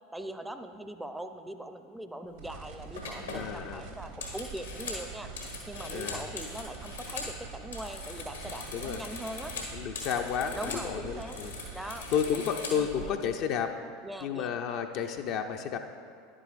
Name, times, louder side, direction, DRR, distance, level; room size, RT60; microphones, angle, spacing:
voice 1, 0.1-5.3 5.7-9.5 10.5-11.4 11.7-13.2 14.0-14.5, right 1 dB, 5° right, 8 dB, 0.5 m, -41 dB
sound 1, 2.3-2.5 3.0-7.4 7.6-10.9 11.1-13.0, left 3 dB, 85° left, 1.5 m, -41 dB
sound 2, 2.4-12.4, right 5 dB, 65° right, 1.0 m, -45 dB
voice 2, 3.3-3.9 5.9-6.3 8.7-9.0 9.5-11.5 12.1-13.7 14.2-15.8, left 7 dB, 55° left, 4 dB, 0.5 m, -32 dB
10.5 x 8.6 x 2.5 m, 2.4 s
figure-of-eight pair, 80°, 0 cm